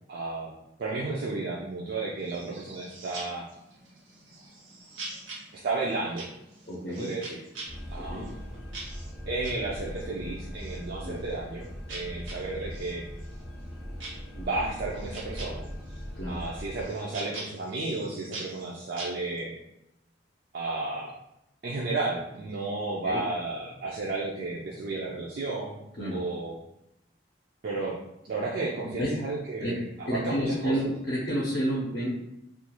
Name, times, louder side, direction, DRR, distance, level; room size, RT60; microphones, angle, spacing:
voice 1, 0.1-0.5 0.8-3.5 5.5-6.3 7.0-7.4 7.9-8.4 9.3-13.0 14.4-15.6 16.3-19.5 20.5-21.1 21.6-25.8 26.1-26.6 27.6-28.0 28.2-30.9, right 3 dB, 50° right, -4 dB, 0.4 m, -33 dB
sound 1, 2.2-19.4, right 2 dB, 85° right, 0.9 m, -45 dB
voice 2, 6.7-7.1 8.0-8.2 11.0-11.2 14.4-14.5 16.2-16.4 23.0-23.2 26.0-26.2 29.0-29.1 29.6-29.8 30.1-32.1, equal, 50° left, -5 dB, 0.6 m, -30 dB
sound 2, 7.7-16.8, equal, ahead, 0.6 m, -40 dB
2.4 x 2.3 x 2.9 m, 0.85 s
head